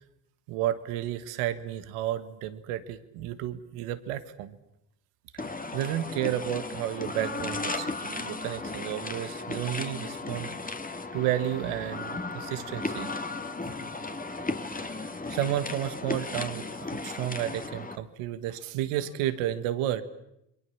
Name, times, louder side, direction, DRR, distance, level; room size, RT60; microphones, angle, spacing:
voice 1, 0.5-4.6 5.7-10.6 11.1-13.1 15.0-16.6 17.0-20.0, right 12 dB, 85° right, 12 dB, 1.6 m, -32 dB
sound 1, 5.4-18.0, left 3 dB, 15° left, 2.0 m, -35 dB
28.0 x 22.5 x 7.2 m, 0.81 s
supercardioid pair, 55°, 50 cm